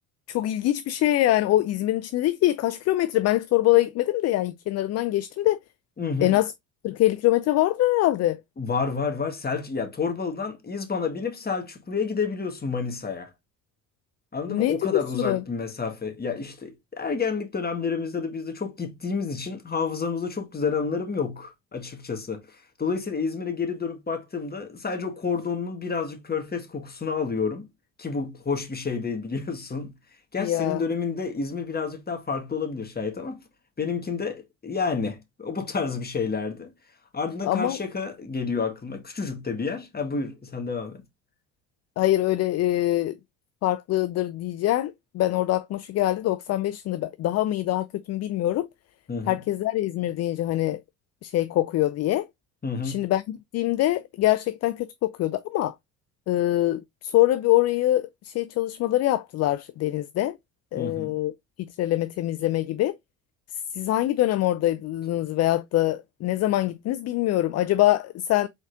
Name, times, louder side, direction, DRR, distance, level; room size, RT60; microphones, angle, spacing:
voice 1, 0.3-5.6 6.2-6.5 6.8-8.4 14.5-15.4 30.4-30.8 37.4-37.8 42.0-43.2 43.6-48.7 49.3-50.8 51.2-52.3 52.8-55.7 56.3-60.4 60.7-61.3 61.8-63.0 63.7-68.5, left 15 dB, 40° left, 0.4 m, -24 dB
voice 2, 6.0-6.4 8.6-13.3 14.3-27.7 28.0-29.9 30.3-33.4 33.8-36.7 37.1-41.0 49.1-49.4 52.6-53.1 60.7-61.2, left 5 dB, 20° left, 1.6 m, -29 dB
5.0 x 4.0 x 2.5 m
hypercardioid pair, 55°, 42 cm